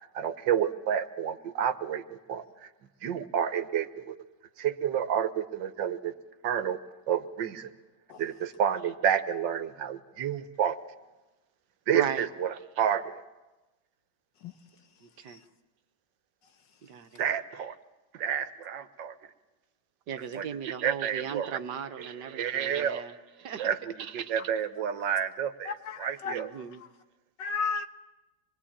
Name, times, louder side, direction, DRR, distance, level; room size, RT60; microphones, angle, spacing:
voice 1, 0.1-2.7 3.0-4.2 4.6-6.1 6.4-6.8 7.1-7.7 8.2-10.8 11.9-13.2 17.2-17.8 18.1-19.2 20.3-21.6 22.0-23.2 23.6-26.5, right 9 dB, 90° right, 12 dB, 1.8 m, -30 dB
voice 2, 11.9-12.3 15.0-15.4 16.8-17.2 20.1-23.1 23.4-23.7 26.2-26.8, right 8 dB, 70° right, 10 dB, 1.7 m, -37 dB
voice 3, 25.7-26.4 27.4-27.9, left 5 dB, 80° left, 9 dB, 1.9 m, -33 dB
25.5 x 21.5 x 8.8 m, 1.1 s
omnidirectional pair, 1.9 m